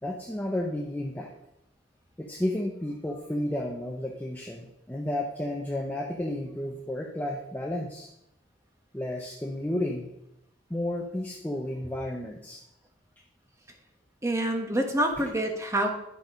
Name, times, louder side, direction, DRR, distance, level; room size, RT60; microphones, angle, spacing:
voice 1, 0.0-1.3 2.2-8.1 8.9-10.1 10.7-12.6, left 1 dB, 10° left, 0 dB, 0.7 m, -32 dB
voice 2, 14.2-15.9, right 1 dB, 15° right, 3 dB, 1.2 m, -26 dB
10.5 x 5.4 x 5.2 m, 0.84 s
head